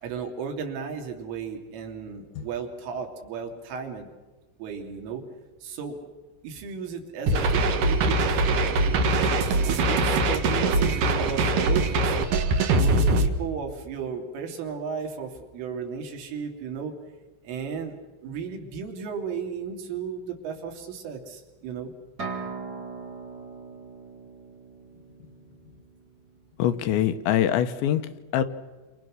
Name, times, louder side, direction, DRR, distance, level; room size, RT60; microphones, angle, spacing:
voice 1, 0.0-4.1 4.6-5.2 5.6-6.0 6.4-9.2 9.6-16.9 17.4-18.0 18.2-21.9, right 6 dB, 80° right, 3 dB, 5.3 m, -35 dB
sound 1, 7.3-13.3, right 2 dB, 60° right, 2.5 m, -22 dB
sound 2, 22.2-25.9, right 4 dB, 20° right, 3.8 m, -39 dB
voice 2, 26.6-28.4, left 10 dB, 75° left, 9 dB, 3.2 m, -24 dB
29.0 x 28.0 x 6.4 m, 1.2 s
omnidirectional pair, 5.6 m